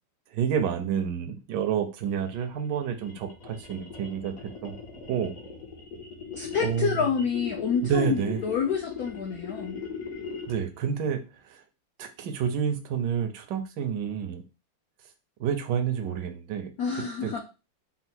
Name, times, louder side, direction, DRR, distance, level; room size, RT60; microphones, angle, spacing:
voice 1, 0.3-4.3 4.6-4.8 5.1-5.3 6.6-6.9 7.9-8.4 10.5-11.6 12.0-14.4 15.4-17.4, right 8 dB, 75° right, 6 dB, 1.0 m, -29 dB
sound 1, 2.1-10.7, left 5 dB, 55° left, 1.0 m, -40 dB
voice 2, 6.3-9.8 16.8-17.4, left 6 dB, 85° left, 1 dB, 0.8 m, -28 dB
4.2 x 2.0 x 4.2 m, 0.30 s
omnidirectional pair, 2.4 m